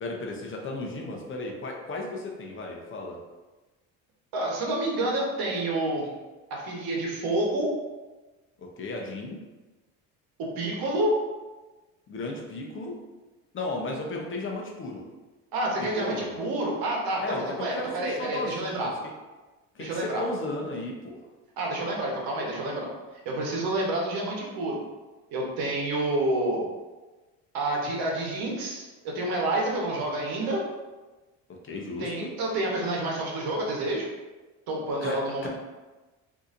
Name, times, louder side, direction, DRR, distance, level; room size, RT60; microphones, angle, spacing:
voice 1, 0.0-3.2 8.6-9.4 12.1-13.0 13.5-15.1 15.8-16.4 17.2-19.0 19.7-21.3 31.5-32.3 35.0-35.5, left 2 dB, 35° left, 1 dB, 0.6 m, -35 dB
voice 2, 4.3-6.1 6.5-7.7 10.4-11.2 15.5-18.9 19.8-20.2 21.6-22.9 23.2-24.8 25.3-26.6 27.5-30.6 32.0-34.1 34.7-35.5, right 1 dB, 70° right, -1 dB, 1.1 m, -28 dB
3.9 x 2.7 x 2.5 m, 1.2 s
cardioid pair, 110°, 38 cm